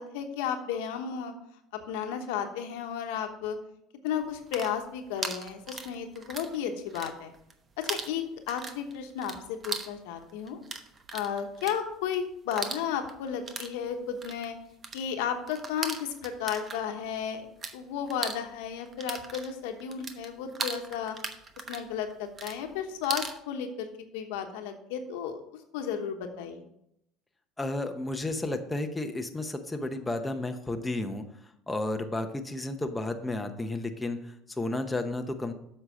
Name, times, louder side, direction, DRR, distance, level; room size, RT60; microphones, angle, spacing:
voice 1, 0.0-1.3 1.9-3.6 4.0-7.3 7.8-10.6 11.1-14.6 14.9-17.4 17.7-21.2 21.7-23.9 24.1-25.4 25.7-26.6, left 8 dB, 85° left, 5 dB, 1.1 m, -33 dB
sound 1, 4.3-6.6 6.8-7.6 7.8-17.8 18.0-23.4, right 4 dB, 35° right, 0.9 m, -38 dB
voice 2, 27.6-35.5, left 2 dB, 10° left, 5 dB, 0.8 m, -32 dB
7.8 x 5.7 x 5.0 m, 0.76 s
supercardioid pair, 100°, 0 cm